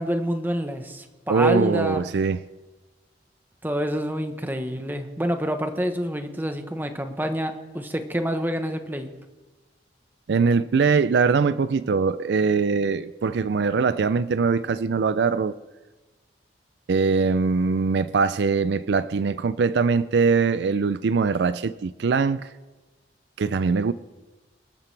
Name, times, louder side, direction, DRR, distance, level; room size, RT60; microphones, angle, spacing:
voice 1, 0.0-2.0 3.6-9.1, equal, 10° right, 1.0 m, -27 dB
voice 2, 1.3-2.4 10.3-15.6 16.9-22.5 23.4-23.9, right 5 dB, 65° right, 0.4 m, -22 dB
25.5 x 12.5 x 3.3 m
head